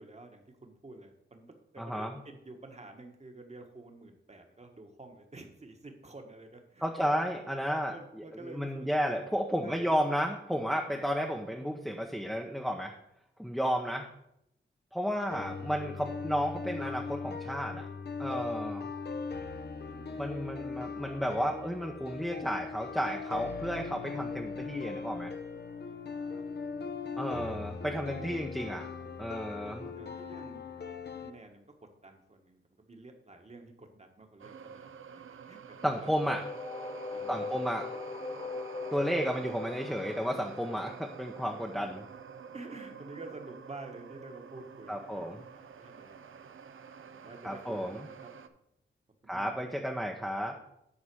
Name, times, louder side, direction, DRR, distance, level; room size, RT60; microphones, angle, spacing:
voice 1, 0.0-7.1 7.9-8.9 9.6-10.2 18.4-18.7 19.9-20.3 25.8-26.4 27.3-28.3 29.5-30.6 31.2-31.6 32.0-36.3 37.1-37.7 39.3-39.4 42.5-45.3 45.5-46.7 47.0-48.5 49.2-49.5, right 2 dB, 30° right, 4 dB, 1.4 m, -50 dB
voice 2, 1.8-2.1 6.8-12.9 13.4-14.1 14.9-17.9 18.2-18.9 20.2-25.3 27.2-28.9 29.2-29.9 35.8-36.4 37.3-37.9 38.9-42.1 44.9-45.4 47.4-48.0 49.3-50.6, equal, ahead, 1 dB, 0.8 m, -32 dB
Emotional Piano, 15.3-31.3, left 5 dB, 50° left, 0.8 m, -39 dB
sound 1, 34.4-48.5, right 7 dB, 70° right, 0.6 m, -49 dB
sound 2, 36.3-42.0, left 3 dB, 35° left, 1.5 m, -40 dB
9.7 x 4.1 x 6.2 m, 0.80 s
wide cardioid pair, 80°, 21 cm